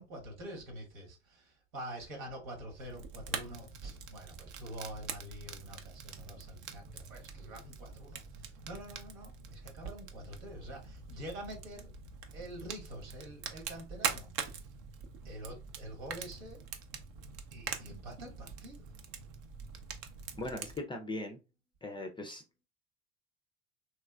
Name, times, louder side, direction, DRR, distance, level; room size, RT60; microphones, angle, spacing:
voice 1, 0.0-11.9 12.3-14.3 15.2-16.6 17.5-18.8, right 1 dB, 75° right, 1.4 m, -46 dB
Fire, 2.8-20.8, right 6 dB, 55° right, 0.7 m, -44 dB
voice 2, 20.4-21.4 21.8-22.4, left 2 dB, 10° left, 0.4 m, -39 dB
3.1 x 3.0 x 2.3 m
hypercardioid pair, 75°, 41 cm